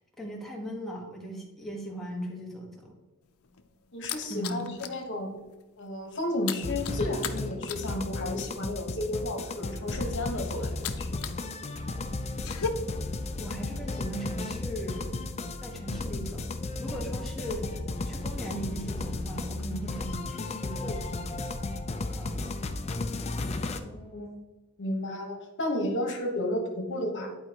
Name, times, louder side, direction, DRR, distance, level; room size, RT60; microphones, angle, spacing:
voice 1, 0.0-3.0 4.3-4.7 13.4-15.2 15.6-16.5 16.8-21.0 22.1-22.5, right 1 dB, ahead, -2 dB, 1.4 m, -38 dB
sound 1, 3.2-5.0 5.4-5.6 5.9-11.4 11.7-12.7, left 9 dB, 90° left, 0.6 m, -38 dB
voice 2, 3.9-5.4 5.8-11.1 23.8-24.3 24.8-27.3, left 1 dB, 55° left, 2 dB, 1.4 m, -32 dB
sound 2, 6.6-23.8, left 2 dB, 30° left, 0.5 m, -34 dB
11.0 x 4.5 x 2.9 m, 1.2 s
head